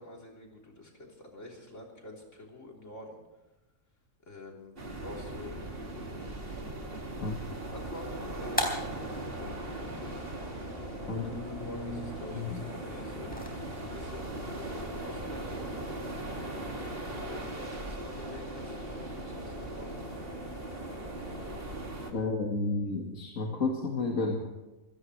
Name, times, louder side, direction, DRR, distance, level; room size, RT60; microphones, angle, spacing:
voice 1, 0.0-3.2 4.3-4.7 5.0-5.7 7.7-8.7 11.1-15.6 16.7-20.0, left 1 dB, 65° left, -1 dB, 3.9 m, -48 dB
sound 1, 4.8-22.1, right 1 dB, 45° right, 2.5 m, -39 dB
sound 2, 8.0-13.5, equal, 5° left, 3.6 m, -40 dB
sound 3, 8.8-21.6, left 1 dB, 40° left, 7.2 m, -47 dB
voice 2, 11.1-12.6 22.1-24.4, left 3 dB, 80° left, 0 dB, 2.2 m, -32 dB
25.0 x 16.5 x 3.3 m, 1.1 s
omnidirectional pair, 1.4 m